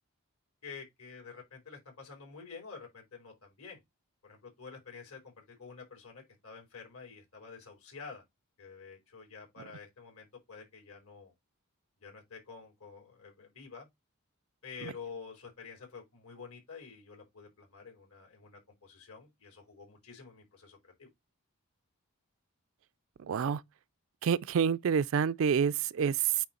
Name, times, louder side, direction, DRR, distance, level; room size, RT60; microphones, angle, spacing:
voice 1, 0.6-3.8 4.2-8.2 8.6-11.3 12.0-13.9 14.6-21.1, left 5 dB, 75° left, 3.7 m, -49 dB
voice 2, 23.3-23.6 24.2-26.4, right 7 dB, 65° right, 0.3 m, -28 dB
8.9 x 3.1 x 4.2 m
head